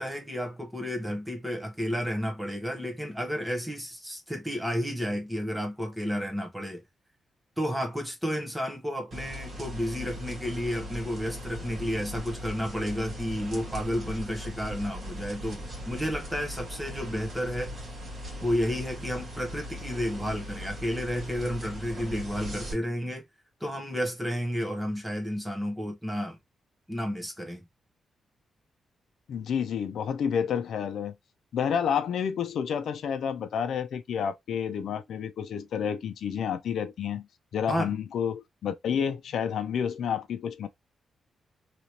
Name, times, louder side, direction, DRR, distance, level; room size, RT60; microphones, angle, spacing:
voice 1, 0.0-6.8 7.6-15.6 15.8-17.7 18.4-23.2 23.6-26.4 26.9-27.6 37.7-37.9, equal, 5° right, 0.9 m, -31 dB
sound 1, 9.1-22.7, equal, 40° right, 1.6 m, -39 dB
voice 2, 29.3-31.1 31.5-37.3 37.5-40.7, left 7 dB, 75° left, 0.4 m, -30 dB
3.0 x 2.8 x 2.8 m
wide cardioid pair, 140°, 0 cm